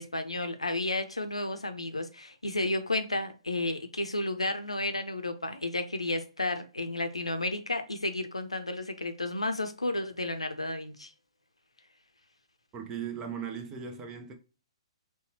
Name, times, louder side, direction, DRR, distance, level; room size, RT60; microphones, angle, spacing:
voice 1, 0.0-11.1, left 2 dB, 85° left, 0.5 m, -32 dB
voice 2, 12.7-14.3, right 7 dB, 20° right, 0.6 m, -38 dB
4.1 x 2.2 x 2.8 m
figure-of-eight pair, 125°, 3 cm